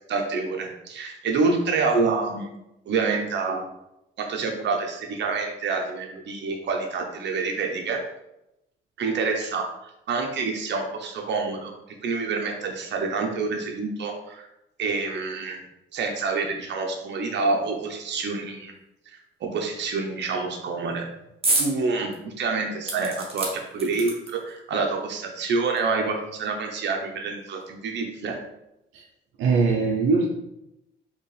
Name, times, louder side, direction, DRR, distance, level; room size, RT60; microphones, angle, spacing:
voice 1, 0.1-2.5 2.9-3.6 4.2-8.0 9.0-11.7 12.0-14.5 14.8-15.6 15.9-18.7 19.4-21.1 21.6-28.4, right 4 dB, 65° right, 3 dB, 0.8 m, -27 dB
sound 1, 21.4-21.7 22.1-22.2 22.9-24.5 25.4-25.5 25.8-25.9, right 2 dB, 30° right, 1.1 m, -27 dB
voice 2, 29.4-30.3, right 4 dB, 90° right, 0 dB, 0.6 m, -21 dB
4.2 x 3.0 x 3.3 m, 0.88 s
cardioid pair, 90°, 20 cm